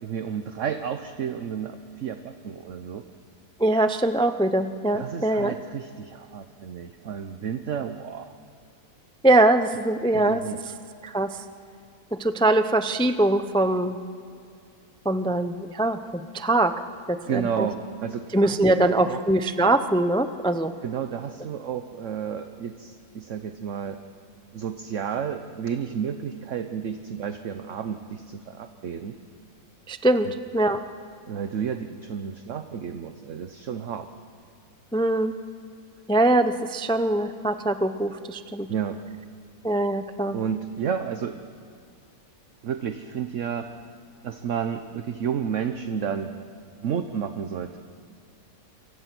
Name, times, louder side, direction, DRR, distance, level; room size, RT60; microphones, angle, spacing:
voice 1, 0.0-3.0 4.9-8.3 10.1-10.6 17.3-19.2 20.8-24.0 24.5-29.2 30.2-30.3 31.3-34.1 38.7-39.0 40.3-41.4 42.6-43.7 44.2-46.3 46.8-47.8, right 7 dB, 55° right, 8 dB, 1.1 m, -31 dB
voice 2, 3.6-5.5 9.2-10.4 11.0-11.4 12.1-14.0 15.0-16.7 17.1-17.7 18.3-20.7 29.9-30.3 30.5-30.8 34.9-35.3 36.1-38.7 39.6-40.4, right 1 dB, 5° left, 9 dB, 0.4 m, -22 dB
28.0 x 24.5 x 6.1 m, 2.4 s
omnidirectional pair, 1.6 m